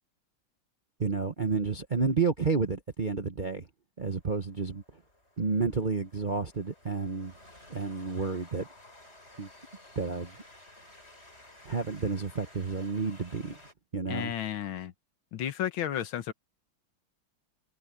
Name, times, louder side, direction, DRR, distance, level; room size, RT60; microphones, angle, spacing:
voice 1, 1.0-3.7 4.0-4.8 5.4-7.3 7.7-8.7 9.4-9.5 10.0-10.3 11.6-13.6 13.9-14.3, right 4 dB, 35° right, 0.7 m, -30 dB
Train, 4.0-13.7, left 1 dB, 30° left, 8.2 m, -55 dB
voice 2, 14.1-14.9 15.3-16.3, left 10 dB, 75° left, 1.8 m, -32 dB
omnidirectional pair, 2.3 m